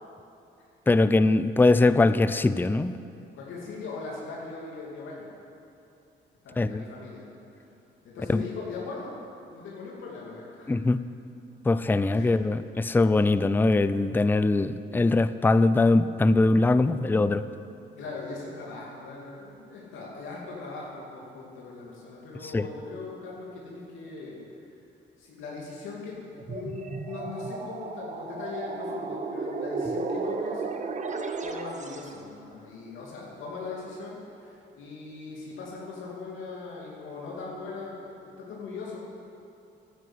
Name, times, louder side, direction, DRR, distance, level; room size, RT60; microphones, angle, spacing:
voice 1, 0.9-3.0 6.6-6.8 8.3-8.4 10.7-11.0 11.7-17.5 22.5-22.7, left 2 dB, 10° left, 13 dB, 0.4 m, -22 dB
voice 2, 3.3-5.3 6.4-7.3 7.6-7.7 8.0-9.2 9.5-10.8 12.1-12.5 18.0-24.4 25.2-30.6 31.4-39.0, left 4 dB, 80° left, -4 dB, 2.6 m, -40 dB
sound 1, 26.4-32.2, right 4 dB, 35° right, 1.1 m, -34 dB
11.0 x 9.4 x 8.0 m, 2.8 s
cardioid pair, 90°, 20 cm